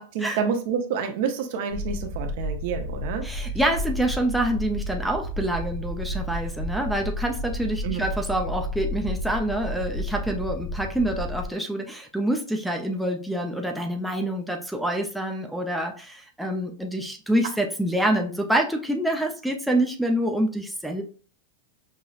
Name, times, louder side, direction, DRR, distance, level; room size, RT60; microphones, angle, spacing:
voice 1, 0.0-3.2 7.8-8.0, right 6 dB, 60° right, 6 dB, 0.6 m, -28 dB
sound 1, 1.7-11.5, left 1 dB, 25° left, 0.8 m, -32 dB
voice 2, 3.2-21.0, right 1 dB, ahead, 1 dB, 0.4 m, -26 dB
5.4 x 2.0 x 2.3 m, 0.40 s
supercardioid pair, 145°, 0 cm